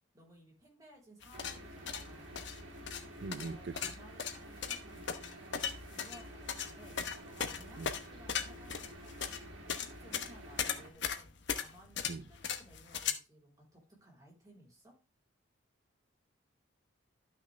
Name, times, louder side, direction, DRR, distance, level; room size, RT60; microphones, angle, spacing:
voice 1, 0.1-2.4 3.2-9.3 9.8-11.3 11.5-15.0, equal, 20° right, 3.9 m, -59 dB
sound 1, 1.2-13.1, left 7 dB, 60° left, 1.0 m, -38 dB
sound 2, 1.3-10.9, equal, 75° right, 2.5 m, -50 dB
voice 2, 3.2-3.9 7.8-7.9 12.1-12.2, right 3 dB, 55° right, 0.5 m, -41 dB
12.0 x 5.9 x 3.3 m
head